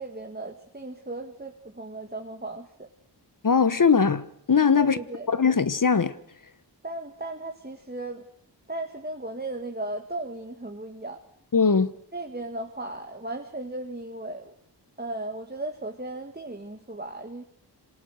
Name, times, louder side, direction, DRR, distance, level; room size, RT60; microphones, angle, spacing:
voice 1, 0.0-2.9 4.8-5.3 6.8-8.2 8.7-11.2 12.1-14.5 15.0-17.4, right 2 dB, 20° right, 2.0 m, -36 dB
voice 2, 3.4-5.0 5.3-6.2 11.5-11.9, left 5 dB, 50° left, 1.2 m, -21 dB
26.5 x 26.0 x 6.6 m
wide cardioid pair, 55°, 43 cm